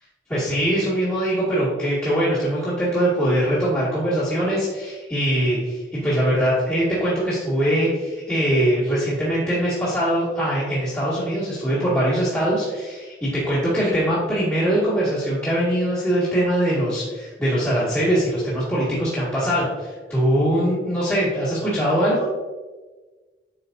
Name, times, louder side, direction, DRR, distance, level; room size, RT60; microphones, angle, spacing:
voice 1, 0.3-22.3, equal, 15° left, -13 dB, 2.2 m, -22 dB
8.8 x 5.8 x 2.7 m, 1.3 s
head